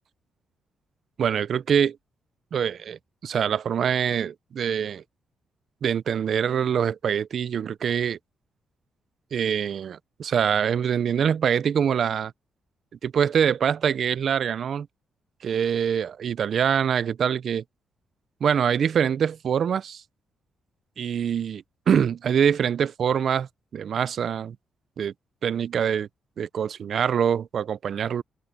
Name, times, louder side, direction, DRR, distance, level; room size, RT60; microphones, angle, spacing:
voice 1, 1.2-2.0 2.5-5.0 5.8-8.2 9.3-12.3 13.0-14.9 15.4-17.6 18.4-20.0 21.0-24.6 25.0-25.1 25.4-26.1 26.4-28.2, right 8 dB, 50° right, 0.5 m, -24 dB
open air
cardioid pair, 155°, 0 cm